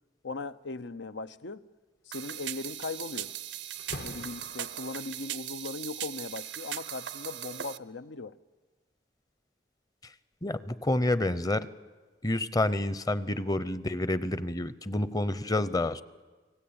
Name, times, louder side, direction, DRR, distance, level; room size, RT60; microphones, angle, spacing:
voice 1, 0.2-1.6 2.1-3.3 4.0-8.4, left 3 dB, 85° left, 0.8 m, -39 dB
sound 1, 2.1-7.8, right 12 dB, 80° right, 0.8 m, -39 dB
Slam, 2.5-2.7 3.1-5.0, left 2 dB, 60° left, 1.0 m, -45 dB
voice 2, 10.4-11.7 12.2-16.0, left 1 dB, 20° left, 0.7 m, -28 dB
30.0 x 19.5 x 8.8 m
head